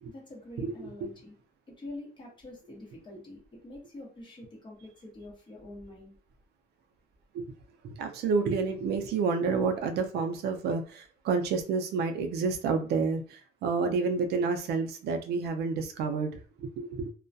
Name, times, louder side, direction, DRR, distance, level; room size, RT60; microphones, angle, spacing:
voice 1, 0.1-1.4 1.7-6.1, left 1 dB, 25° left, -2 dB, 0.9 m, -46 dB
voice 2, 7.8-17.1, right 4 dB, 65° right, 6 dB, 0.4 m, -29 dB
2.2 x 2.1 x 2.6 m, 0.39 s
cardioid pair, 150°, 18 cm